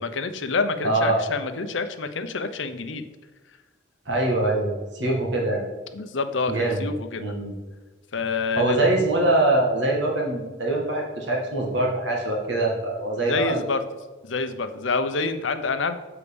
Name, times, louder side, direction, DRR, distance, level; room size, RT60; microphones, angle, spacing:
voice 1, 0.0-3.0 5.9-7.4 8.1-8.9 13.2-13.8 14.2-16.0, left 4 dB, 80° left, 9 dB, 0.7 m, -27 dB
voice 2, 0.8-1.2 4.1-5.6 6.5-6.8 7.2-7.5 8.6-13.6, right 2 dB, 70° right, -1 dB, 1.9 m, -23 dB
7.0 x 4.8 x 6.9 m, 1.3 s
head